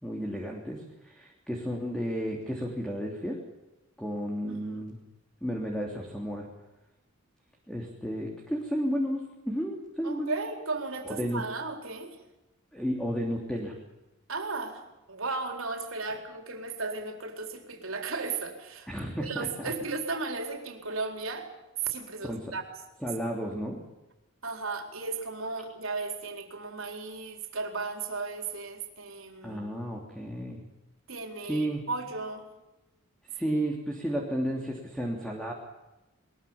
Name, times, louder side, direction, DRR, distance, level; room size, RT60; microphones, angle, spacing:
voice 1, 0.0-3.4 4.0-5.0 5.4-6.5 7.7-10.4 11.1-11.4 12.7-13.8 18.9-19.7 22.2-22.5 23.0-23.8 29.4-30.6 31.4-31.8 33.3-35.5, equal, 5° left, 0 dB, 3.3 m, -32 dB
voice 2, 4.5-4.8 10.0-12.2 14.3-14.8 15.1-18.9 19.2-21.5 21.8-22.6 24.4-29.7 31.1-32.5 33.5-33.6, right 3 dB, 75° right, 4 dB, 4.3 m, -35 dB
22.0 x 22.0 x 7.3 m, 1.0 s
head